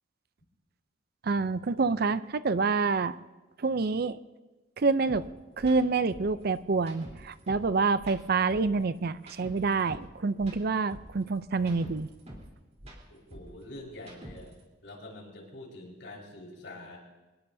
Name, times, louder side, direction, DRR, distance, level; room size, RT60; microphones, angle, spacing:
voice 1, 1.2-3.1 3.6-4.2 4.8-5.2 5.6-12.1, right 4 dB, 55° right, 14 dB, 0.5 m, -27 dB
sound 1, 5.1-5.2 5.6-5.8 6.1-7.7 8.0-10.1 10.4-12.5 12.8-14.6, equal, 35° right, 3.6 m, -47 dB
voice 2, 13.1-17.0, left 1 dB, 80° left, -2 dB, 4.7 m, -46 dB
24.5 x 20.5 x 2.7 m, 1.2 s
head